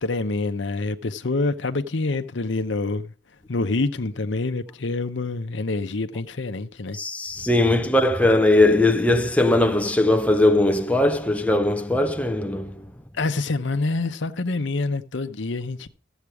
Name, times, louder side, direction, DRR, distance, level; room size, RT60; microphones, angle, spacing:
voice 1, 0.0-3.1 3.5-7.0 13.1-15.9, left 3 dB, 70° left, 0.8 m, -26 dB
voice 2, 6.9-12.8, left 1 dB, 5° left, 0.7 m, -19 dB
13.5 x 8.1 x 4.8 m
head